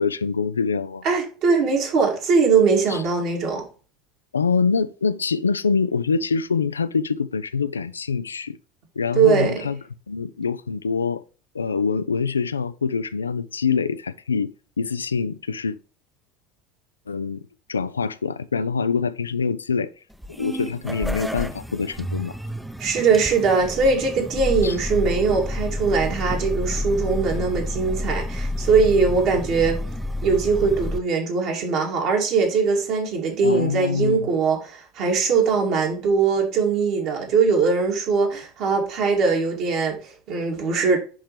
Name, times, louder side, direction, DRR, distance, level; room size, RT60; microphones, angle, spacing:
voice 1, 0.0-1.0 2.9-3.0 4.3-8.6 9.0-9.8 10.1-11.2 11.5-15.8 17.1-17.4 17.7-19.9 20.4-22.3 24.6-24.8 33.4-34.3, left 5 dB, 85° left, 0.4 m, -25 dB
voice 2, 1.0-3.6 9.1-9.6 22.8-29.8 30.2-41.0, right 5 dB, 55° right, 2.7 m, -21 dB
sound 1, 20.1-31.0, left 1 dB, 5° right, 0.7 m, -29 dB
10.5 x 4.2 x 3.3 m
figure-of-eight pair, 70°, 0 cm